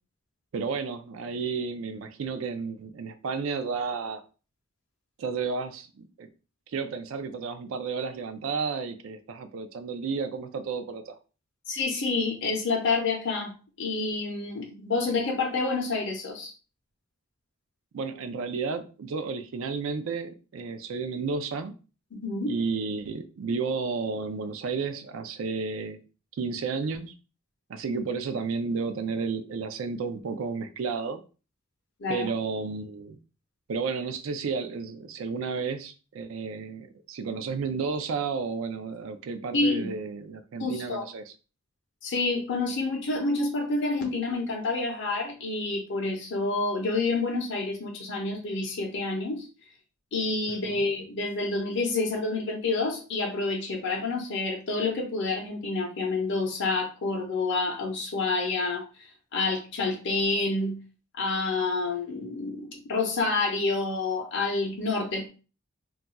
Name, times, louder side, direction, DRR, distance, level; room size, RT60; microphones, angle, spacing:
voice 1, 0.5-4.2 5.2-6.3 6.7-11.2 17.9-21.7 22.5-26.0 26.4-27.1 27.7-31.2 32.1-33.2 33.7-41.2 50.6-50.8, right 5 dB, 65° right, 8 dB, 0.4 m, -32 dB
voice 2, 11.7-16.5 22.1-22.6 32.0-32.3 39.5-40.0 40.6-41.1 42.0-49.5 50.1-58.8 59.3-60.8 61.1-65.3, left 3 dB, 55° left, 0 dB, 0.6 m, -28 dB
2.3 x 2.2 x 3.9 m, 0.34 s
head